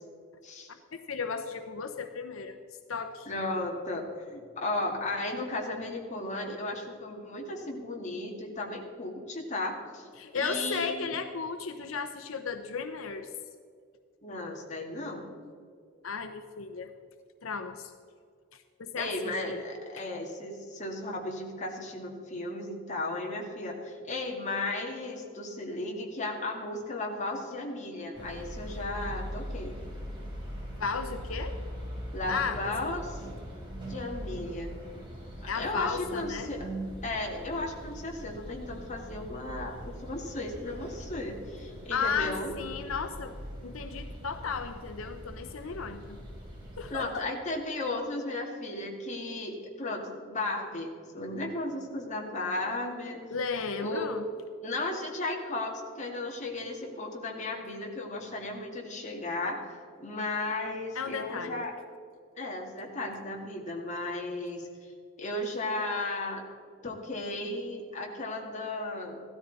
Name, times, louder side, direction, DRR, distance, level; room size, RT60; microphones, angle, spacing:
voice 1, 1.1-2.6 2.9-3.3 10.2-13.3 16.0-16.9 17.4-17.9 18.5-19.6 20.0-20.1 30.8-31.6 32.3-32.9 35.5-36.5 41.9-43.4 43.6-46.2 46.8-47.3 53.3-54.2 60.9-61.6, left 5 dB, 90° left, 7 dB, 0.8 m, -34 dB
voice 2, 3.3-4.0 4.3-10.1 10.3-11.0 14.2-15.3 19.0-29.8 32.1-33.2 33.9-34.7 35.4-36.7 37.0-42.5 46.9-53.2 53.6-54.1 54.6-61.7 62.4-64.7 65.2-66.5 66.8-69.2, left 2 dB, 35° left, 0 dB, 2.2 m, -35 dB
sound 1, 28.1-46.9, equal, 25° right, 3.9 m, -41 dB
16.0 x 13.0 x 4.1 m, 2.2 s
head